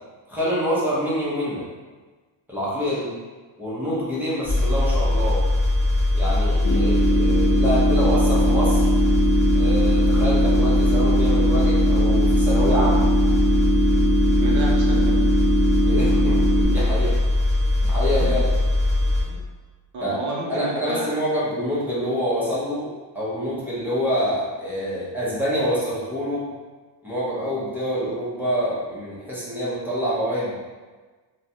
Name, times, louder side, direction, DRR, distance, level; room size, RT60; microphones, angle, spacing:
voice 1, 0.3-1.6 2.5-3.1 3.6-5.4 6.1-8.9 9.5-13.1 15.8-17.2 17.8-18.4 19.3-19.4 20.0-20.2 20.5-22.9 23.1-26.5 27.0-30.6, equal, 5° right, -9 dB, 0.7 m, -26 dB
sound 1, 4.5-19.2, left 1 dB, 25° left, 0.8 m, -21 dB
sound 2, 6.6-16.6, right 1 dB, 70° left, 0.8 m, -22 dB
voice 2, 14.4-15.2 18.2-18.3 19.9-21.2, right 2 dB, 40° right, -3 dB, 0.6 m, -31 dB
3.1 x 2.2 x 2.6 m, 1.3 s
cardioid pair, 165°, 45 cm